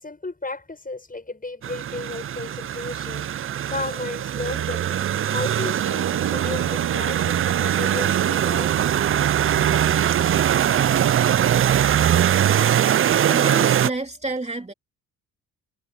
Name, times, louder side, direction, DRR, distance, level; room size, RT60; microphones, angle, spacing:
voice 1, 0.0-3.3 3.7-8.7, left 2 dB, 20° left, 6.6 m, -34 dB
sound 1, 1.6-13.9, right 10 dB, 35° right, 0.4 m, -21 dB
sound 2, 5.8-11.5, right 9 dB, 65° right, 4.9 m, -33 dB
voice 2, 13.3-14.7, right 2 dB, 15° right, 2.9 m, -29 dB
supercardioid pair, 60°, 39 cm